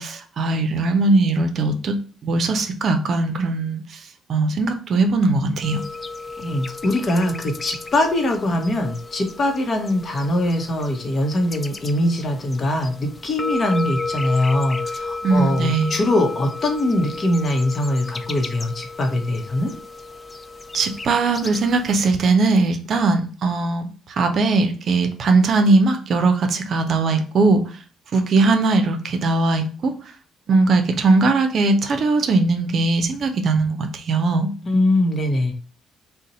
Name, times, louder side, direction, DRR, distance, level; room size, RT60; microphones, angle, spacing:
voice 1, 0.0-2.0 2.2-3.8 4.3-5.8 15.2-16.0 20.7-27.6 28.1-29.9 30.5-34.5, right 3 dB, 60° right, 6 dB, 0.5 m, -19 dB
sound 1, 5.6-22.0, left 3 dB, 30° left, 0.3 m, -33 dB
voice 2, 6.4-19.7 34.6-35.5, left 1 dB, 45° left, 3 dB, 0.8 m, -22 dB
2.6 x 2.1 x 4.0 m, 0.39 s
hypercardioid pair, 55°, 0 cm